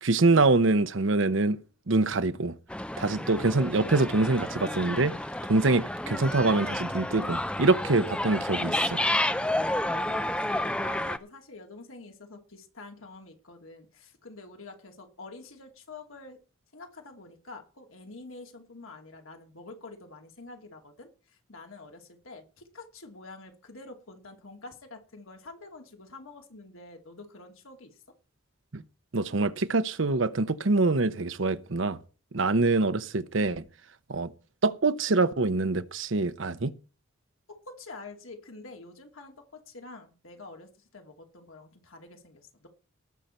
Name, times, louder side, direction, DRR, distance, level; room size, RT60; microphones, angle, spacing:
voice 1, 0.0-1.6 1.9-2.6 3.0-5.2 5.5-9.0 28.7-28.8 29.1-32.0 32.3-33.6 34.1-34.3 34.6-36.7, right 3 dB, 65° right, 0.9 m, -25 dB
sound 1, 2.7-11.2, left 1 dB, 5° left, 0.5 m, -30 dB
voice 2, 9.9-16.4 16.7-28.0 37.7-42.7, left 3 dB, 80° left, 2.6 m, -47 dB
18.5 x 6.8 x 4.4 m
head